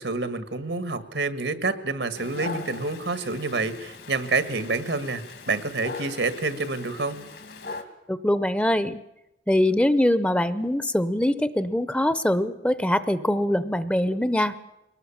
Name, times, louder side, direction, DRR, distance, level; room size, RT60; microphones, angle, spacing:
voice 1, 0.0-7.2, right 3 dB, 85° right, 10 dB, 1.8 m, -28 dB
Dog, 2.2-7.8, left 4 dB, 65° left, 2.4 m, -40 dB
voice 2, 8.1-9.0 9.5-14.5, left 1 dB, 5° left, 13 dB, 0.7 m, -23 dB
23.0 x 19.0 x 7.3 m, 0.93 s
head